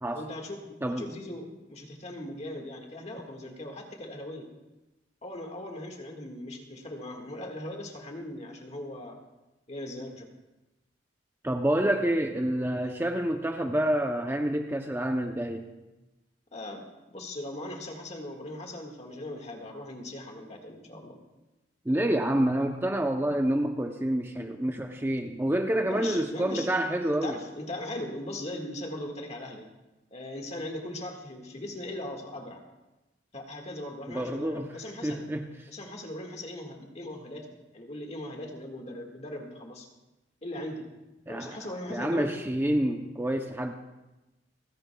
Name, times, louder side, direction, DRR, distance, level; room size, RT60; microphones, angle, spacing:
voice 1, 0.1-4.5 5.2-9.2 9.7-10.3 12.8-12.9 16.5-21.2 25.9-26.7 27.2-29.6 30.1-32.6 33.3-35.3 35.7-37.5 37.7-39.9 40.4-40.8 41.3-42.3, left 1 dB, 35° left, 2 dB, 1.7 m, -39 dB
voice 2, 11.4-15.7 21.9-27.4 34.1-34.7 35.0-35.5 41.3-41.6 41.9-43.7, right 1 dB, 10° right, 4 dB, 0.6 m, -28 dB
29.0 x 10.5 x 2.3 m, 1.0 s
head